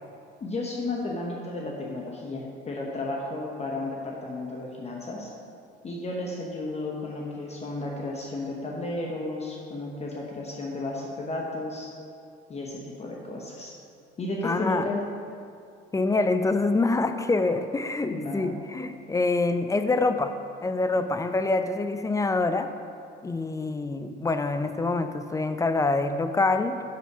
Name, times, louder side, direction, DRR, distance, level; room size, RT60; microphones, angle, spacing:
voice 1, 0.4-5.3 5.8-11.9 12.5-13.7 14.2-15.0 18.1-18.5, left 2 dB, 30° left, -2 dB, 1.0 m, -33 dB
voice 2, 14.4-14.9 15.9-20.3 20.6-22.7 23.2-26.8, left 3 dB, 15° left, 9 dB, 0.4 m, -25 dB
6.1 x 5.7 x 6.0 m, 2.4 s
cardioid pair, 100°, 21 cm